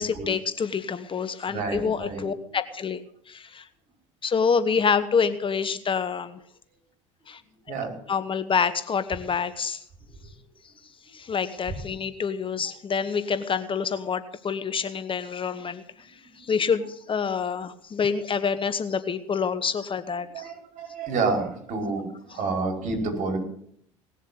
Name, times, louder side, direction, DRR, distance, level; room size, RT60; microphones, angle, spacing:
voice 1, 0.0-3.0 3.3-3.7 4.2-6.4 7.3-7.4 8.1-9.8 11.1-15.8 16.4-20.4, left 6 dB, 35° left, 13 dB, 1.1 m, -27 dB
voice 2, 1.5-2.3 7.7-7.9 16.4-16.5 20.3-23.4, right 4 dB, 50° right, 3 dB, 5.2 m, -29 dB
19.0 x 7.5 x 7.9 m, 0.66 s
hypercardioid pair, 65°, 16 cm